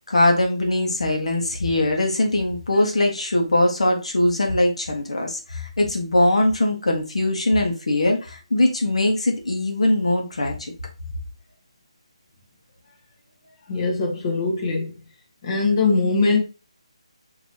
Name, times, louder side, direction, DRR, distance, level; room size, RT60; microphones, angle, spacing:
voice 1, 0.1-10.7, left 1 dB, 70° left, 1.2 m, -21 dB
voice 2, 13.7-14.9 15.4-16.4, left 3 dB, 30° left, 1.1 m, -21 dB
4.7 x 3.0 x 2.7 m
figure-of-eight pair, 170°, 3 cm